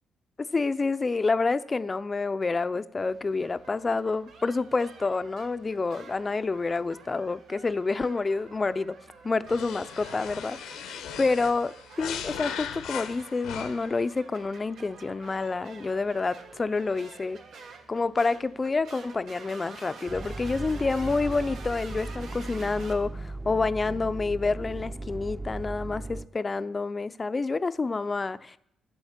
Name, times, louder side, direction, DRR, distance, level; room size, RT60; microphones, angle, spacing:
voice 1, 0.4-9.0 9.2-10.6 10.8-17.4 17.9-28.6, left 3 dB, 25° left, 0.5 m, -28 dB
sound 1, 3.1-23.0, right 4 dB, 80° right, 1.7 m, -49 dB
sound 2, 9.5-14.0, left 9 dB, 90° left, 1.0 m, -38 dB
sound 3, 20.1-26.3, right 2 dB, 20° right, 0.8 m, -37 dB
11.5 x 7.6 x 7.4 m
cardioid pair, 90°, 0 cm